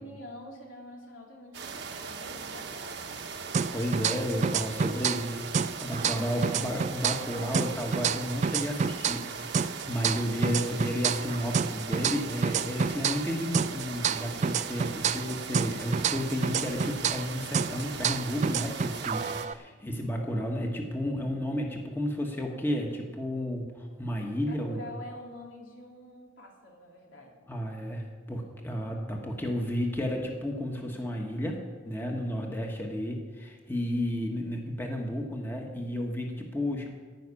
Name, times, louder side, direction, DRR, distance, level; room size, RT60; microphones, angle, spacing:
voice 1, 0.0-3.4 4.8-5.3 24.4-27.4, left 1 dB, 85° left, -1 dB, 3.2 m, -47 dB
sound 1, 1.5-19.5, right 5 dB, 60° right, 1.1 m, -39 dB
sound 2, 3.5-5.3 5.5-9.3 9.5-13.3 13.5-17.3 17.5-19.5, right 6 dB, 35° right, 0.3 m, -29 dB
voice 2, 3.7-5.4 5.8-24.8 27.5-36.9, equal, 10° left, 0 dB, 1.3 m, -32 dB
15.0 x 5.9 x 9.8 m, 1.5 s
head